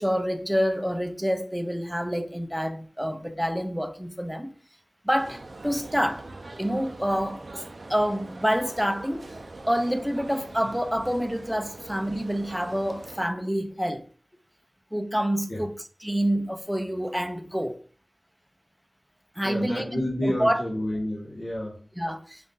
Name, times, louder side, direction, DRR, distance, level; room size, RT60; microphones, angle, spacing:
voice 1, 0.0-4.5 5.0-6.3 6.6-7.6 7.9-9.2 9.7-14.0 14.9-15.7 16.0-17.8 19.4-20.6 22.0-22.5, equal, 5° right, 0.6 m, -27 dB
sound 1, 5.1-13.3, right 2 dB, 70° right, 0.5 m, -43 dB
voice 2, 19.4-21.9, left 1 dB, 55° left, 1.1 m, -30 dB
5.1 x 2.5 x 3.8 m
wide cardioid pair, 55°, 0 cm